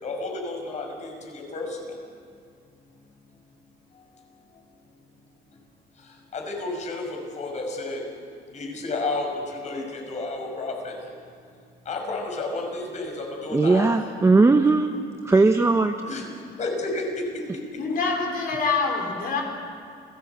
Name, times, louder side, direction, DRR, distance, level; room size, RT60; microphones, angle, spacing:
voice 1, 0.0-1.7 6.3-8.0 8.5-9.3 9.5-10.9 11.9-13.9 16.0-16.3 16.6-17.0, left 3 dB, 45° left, 2 dB, 6.0 m, -31 dB
voice 2, 13.5-15.0 15.2-16.0, right 3 dB, 15° right, 6 dB, 0.9 m, -18 dB
voice 3, 17.8-19.4, left 4 dB, 60° left, 1 dB, 4.3 m, -25 dB
29.5 x 17.0 x 8.2 m, 2.4 s
cardioid pair, 110°, 17 cm